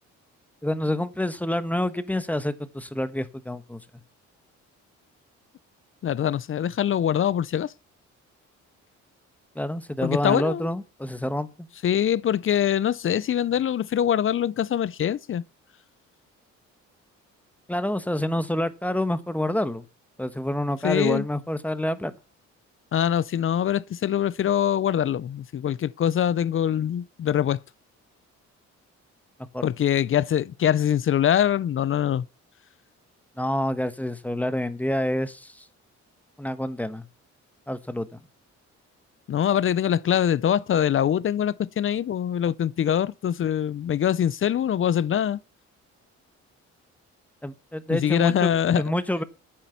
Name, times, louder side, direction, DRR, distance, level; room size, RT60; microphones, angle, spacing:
voice 1, 0.6-3.8 9.5-11.7 17.7-19.8 20.2-22.1 29.5-29.6 33.4-35.6 36.4-37.0 37.7-38.1 47.4-49.2, left 1 dB, 5° left, 1.2 m, -27 dB
voice 2, 6.0-7.7 10.0-10.7 11.8-15.4 20.8-21.2 22.9-27.6 29.6-32.3 39.3-45.4 47.9-48.8, left 9 dB, 45° left, 0.5 m, -23 dB
9.6 x 7.3 x 7.0 m
cardioid pair, 90°, 30 cm